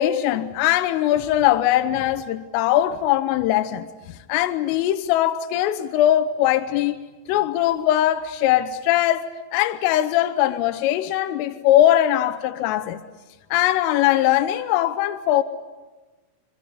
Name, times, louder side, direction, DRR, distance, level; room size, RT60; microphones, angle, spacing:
voice 1, 0.0-3.9 4.3-7.0 7.3-9.3 9.5-13.0 13.5-15.4, left 12 dB, 85° left, 3.6 m, -20 dB
25.5 x 25.5 x 8.4 m
omnidirectional pair, 5.8 m